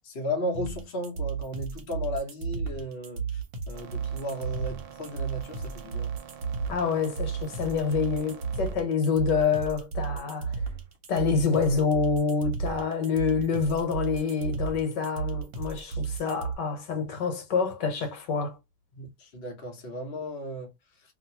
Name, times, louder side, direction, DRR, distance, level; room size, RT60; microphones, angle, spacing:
voice 1, 0.0-3.4 3.7-6.1 18.9-20.7, left 1 dB, 40° left, 1.0 m, -35 dB
sound 1, 0.5-16.5, right 5 dB, 55° right, 1.1 m, -33 dB
sound 2, 3.7-8.7, right 8 dB, 85° right, 1.3 m, -47 dB
voice 2, 6.7-10.6 11.1-18.6, left 5 dB, 70° left, 1.5 m, -27 dB
2.9 x 2.8 x 2.7 m
omnidirectional pair, 2.0 m